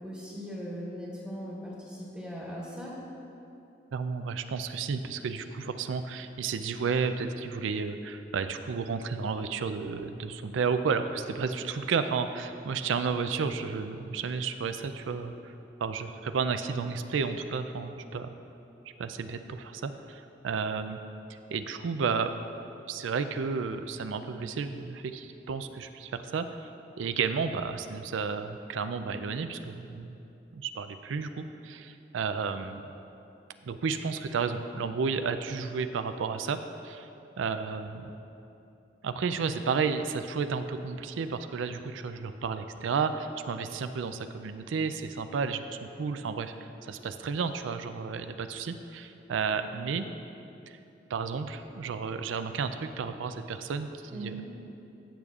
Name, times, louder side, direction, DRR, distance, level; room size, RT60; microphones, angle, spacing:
voice 1, 0.0-2.9 54.1-54.4, equal, 5° right, -6 dB, 1.2 m, -39 dB
voice 2, 3.9-15.5 15.8-18.3 19.0-21.0 21.5-22.4 22.9-26.7 27.0-30.2 30.5-32.8 33.6-36.6 36.8-37.1 37.4-38.1 39.0-50.1 50.7-50.8 51.1-54.3, right 5 dB, 90° right, 9 dB, 0.4 m, -32 dB
15.0 x 6.9 x 2.4 m, 2.8 s
head